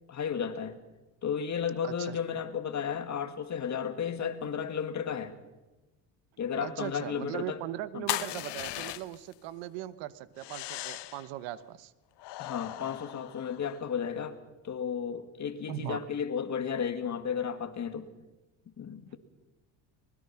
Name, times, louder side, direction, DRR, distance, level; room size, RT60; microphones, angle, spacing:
voice 1, 0.1-0.8 1.2-5.4 6.4-7.6 7.9-8.0 12.4-14.4 14.6-18.1 18.8-19.2, left 7 dB, 40° left, 2.1 m, -33 dB
voice 2, 1.8-2.2 6.6-11.9 15.7-16.0, right 14 dB, 80° right, 1.2 m, -39 dB
sound 1, 8.1-9.3 10.4-11.3 12.2-13.9, left 16 dB, 65° left, 1.1 m, -37 dB
23.5 x 21.0 x 5.9 m
cardioid pair, 105°, 44 cm